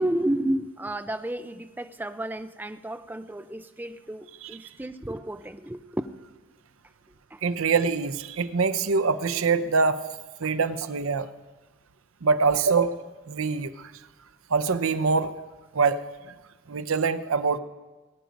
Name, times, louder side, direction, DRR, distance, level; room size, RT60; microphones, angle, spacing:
voice 1, 0.0-6.1 7.3-7.4 10.4-10.5, right 1 dB, 10° right, 10 dB, 0.4 m, -31 dB
voice 2, 7.4-10.0 10.4-11.3 12.2-13.0 13.3-13.9 14.5-15.3 15.7-16.0 16.7-17.6, right 4 dB, 80° right, 13 dB, 0.6 m, -24 dB
19.5 x 9.2 x 5.2 m, 1.2 s
head